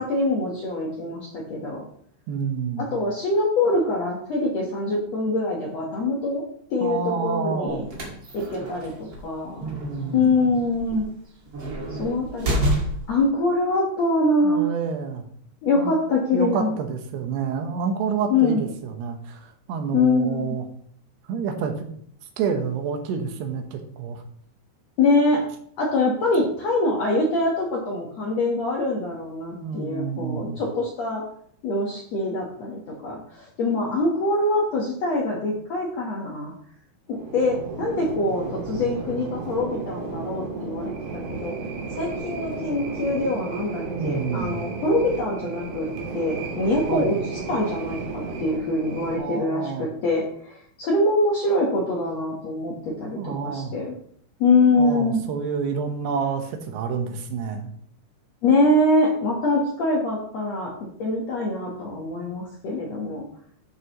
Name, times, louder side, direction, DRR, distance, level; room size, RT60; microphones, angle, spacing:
voice 1, 0.0-1.8 2.8-6.4 6.7-7.8 8.3-9.8 10.1-11.1 11.9-12.6 13.1-14.7 15.6-16.7 18.3-18.6 19.9-20.6 25.0-25.4 25.8-31.2 31.6-36.5 37.1-41.5 41.9-45.9 46.1-53.9 54.4-55.2 58.4-60.7 61.0-63.2, left 2 dB, 65° left, -2 dB, 1.7 m, -24 dB
voice 2, 2.3-2.9 6.8-7.9 9.6-10.3 14.4-15.2 15.8-15.9 16.3-20.7 21.3-21.9 22.4-24.2 29.6-30.6 43.9-44.7 46.9-47.1 49.2-49.9 53.2-53.7 54.8-57.7, right 6 dB, 80° right, 5 dB, 3.1 m, -28 dB
sound 1, 7.7-13.2, right 1 dB, 35° right, 2.1 m, -30 dB
sound 2, 37.1-49.2, right 4 dB, 60° right, 3.1 m, -33 dB
12.5 x 6.7 x 3.0 m, 0.64 s
omnidirectional pair, 4.7 m